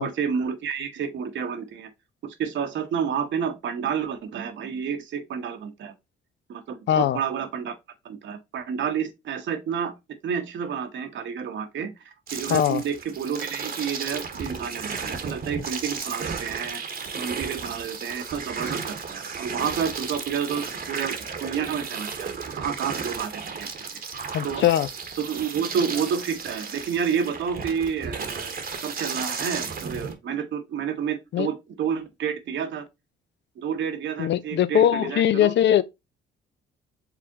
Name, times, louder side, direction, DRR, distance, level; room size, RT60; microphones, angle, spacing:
voice 1, 0.0-1.9 2.2-5.9 6.5-7.7 8.0-9.9 10.2-11.9 12.3-16.8 17.2-23.7 24.1-24.6 25.2-28.5 28.8-32.8 33.6-35.5, right 7 dB, 70° right, 1.1 m, -30 dB
voice 2, 6.9-7.2 12.5-12.8 24.3-24.9 31.3-31.5 34.2-35.8, left 10 dB, 65° left, 0.5 m, -20 dB
sound 1, 12.3-30.1, right 5 dB, 50° right, 1.1 m, -34 dB
4.9 x 3.5 x 2.8 m
cardioid pair, 90°, 20 cm